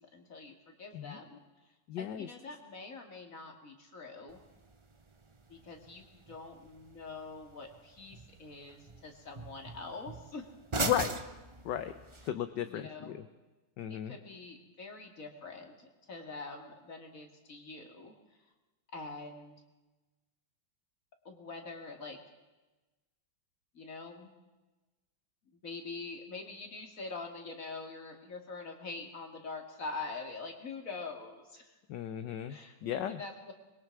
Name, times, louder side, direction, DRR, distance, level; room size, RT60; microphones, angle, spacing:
voice 1, 0.0-1.4 2.0-4.4 5.5-10.5 12.7-13.2 13.9-18.1 18.9-19.5 21.2-22.2 23.7-24.3 25.6-31.8 32.5-33.5, left 3 dB, 40° left, 3 dB, 2.9 m, -45 dB
voice 2, 1.9-2.3 10.8-11.2 11.6-12.0 12.3-13.2 13.8-14.2 31.9-33.2, left 10 dB, 65° left, 10 dB, 1.4 m, -35 dB
sound 1, 4.3-12.3, right 3 dB, 40° right, 0.4 m, -42 dB
24.5 x 22.0 x 4.8 m, 1.1 s
omnidirectional pair, 2.2 m